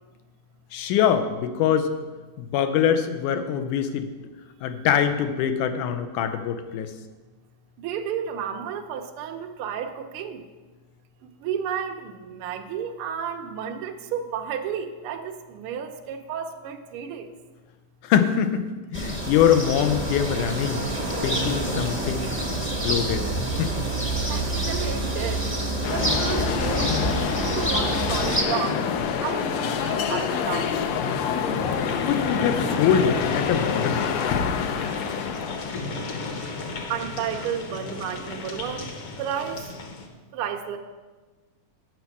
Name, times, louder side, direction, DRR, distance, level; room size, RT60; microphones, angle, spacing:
voice 1, 0.7-1.9 2.4-4.1 4.6-6.9 18.0-18.7 18.9-20.8 21.2-22.3 22.6-23.3 23.6-23.9 32.0-34.1, left 8 dB, 90° left, 8 dB, 2.3 m, -23 dB
voice 2, 7.8-10.4 11.4-17.3 24.3-25.4 25.9-26.9 27.4-28.8 29.2-30.7 36.9-38.9 39.2-39.6 40.3-40.8, right 8 dB, 80° right, 4 dB, 1.2 m, -32 dB
sound 1, 18.9-28.4, right 1 dB, 15° left, 0.4 m, -27 dB
sound 2, 25.8-35.9, left 7 dB, 75° left, 1.6 m, -27 dB
sound 3, 30.9-40.1, left 3 dB, 60° left, 1.7 m, -33 dB
8.6 x 6.0 x 8.2 m, 1.3 s
omnidirectional pair, 3.5 m